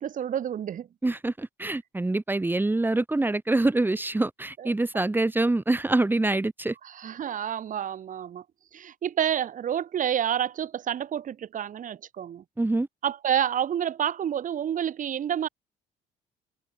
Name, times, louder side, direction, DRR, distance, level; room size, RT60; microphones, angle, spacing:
voice 1, 0.0-0.9 4.6-4.7 6.8-8.4 8.7-12.4 13.0-15.5, right 9 dB, 50° right, 4.1 m, -29 dB
voice 2, 1.0-6.7 12.6-12.9, right 2 dB, 10° right, 2.9 m, -25 dB
cardioid pair, 110°, 17 cm